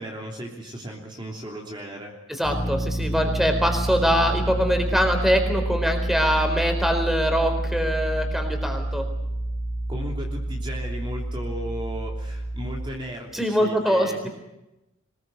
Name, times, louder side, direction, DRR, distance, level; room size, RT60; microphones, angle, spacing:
voice 1, 0.0-2.2 9.9-14.3, equal, 25° right, 0 dB, 3.1 m, -35 dB
sound 1, 2.4-12.9, right 1 dB, 35° left, 4.3 m, -28 dB
voice 2, 2.4-9.0 13.3-14.1, equal, ahead, 5 dB, 4.1 m, -23 dB
24.0 x 21.0 x 7.9 m, 0.93 s
head